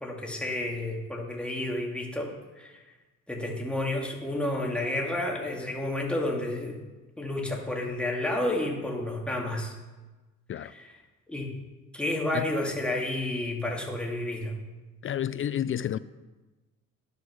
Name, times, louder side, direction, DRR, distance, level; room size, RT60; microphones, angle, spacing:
voice 1, 0.0-2.3 2.6-2.8 3.3-6.8 7.2-9.7 10.6-10.9 11.3-11.5 11.9-14.5, left 1 dB, 5° left, 2.4 m, -31 dB
voice 2, 15.0-16.0, left 10 dB, 45° left, 0.4 m, -30 dB
10.5 x 8.3 x 6.3 m
cardioid pair, 90°, 30 cm